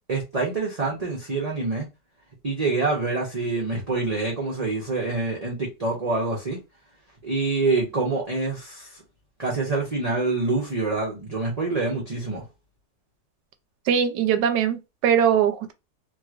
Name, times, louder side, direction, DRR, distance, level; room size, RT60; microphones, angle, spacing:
voice 1, 0.1-1.9 2.4-6.6 7.2-9.0 9.4-12.4, right 3 dB, 35° right, 0.6 m, -26 dB
voice 2, 13.9-15.7, right 8 dB, 80° right, 1.2 m, -21 dB
3.0 x 2.9 x 2.4 m
omnidirectional pair, 1.9 m